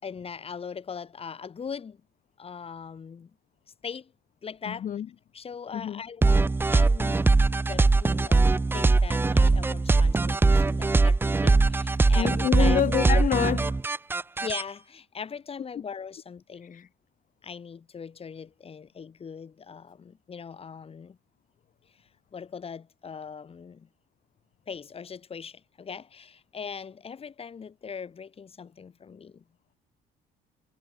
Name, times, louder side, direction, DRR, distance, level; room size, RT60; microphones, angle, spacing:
voice 1, 0.0-2.0 2.4-3.3 3.8-4.1 4.4-4.9 5.3-7.3 7.6-12.8 14.4-16.9 17.4-21.2 22.0-23.9 24.7-29.4, left 6 dB, 35° left, 4.8 m, -40 dB
voice 2, 4.7-5.1 5.7-6.0 12.2-13.8 16.6-16.9, left 9 dB, 50° left, 4.0 m, -27 dB
sound 1, 6.2-14.6, right 3 dB, 15° right, 0.5 m, -21 dB
cardioid pair, 110°, 17 cm